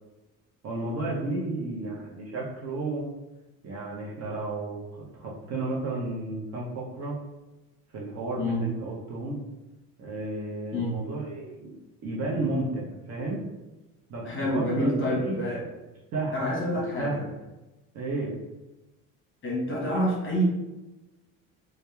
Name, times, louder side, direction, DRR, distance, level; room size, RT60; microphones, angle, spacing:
voice 1, 0.6-3.1 3.6-7.2 7.9-9.4 10.0-11.7 12.0-13.4 14.1-15.4 16.1-16.3 16.7-17.2 17.9-18.4, right 2 dB, 45° right, -3 dB, 0.7 m, -32 dB
voice 2, 8.4-8.7 10.7-11.0 14.2-15.6 16.3-17.2 19.4-20.4, equal, 35° left, -4 dB, 0.9 m, -28 dB
2.7 x 2.1 x 2.3 m, 1.1 s
supercardioid pair, 85°, 37 cm